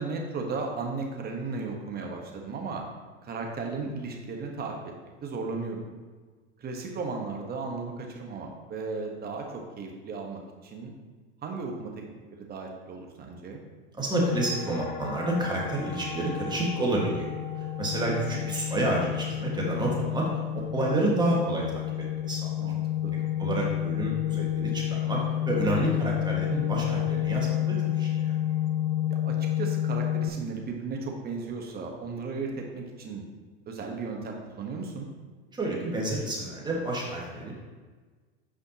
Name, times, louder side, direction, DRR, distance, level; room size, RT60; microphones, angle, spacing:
voice 1, 0.0-2.8 3.2-4.7 5.2-5.9 6.6-10.9 11.4-12.1 12.3-13.6 22.6-23.2 29.2-33.3 33.7-35.1, right 4 dB, 30° right, 1 dB, 1.2 m, -35 dB
voice 2, 14.0-17.3 17.5-22.6 23.4-28.3 35.5-37.5, right 1 dB, 15° right, -3 dB, 1.6 m, -29 dB
sound 1, 14.3-30.3, left 11 dB, 35° left, 0.4 m, -30 dB
8.5 x 5.1 x 2.9 m, 1.4 s
hypercardioid pair, 105°, 31 cm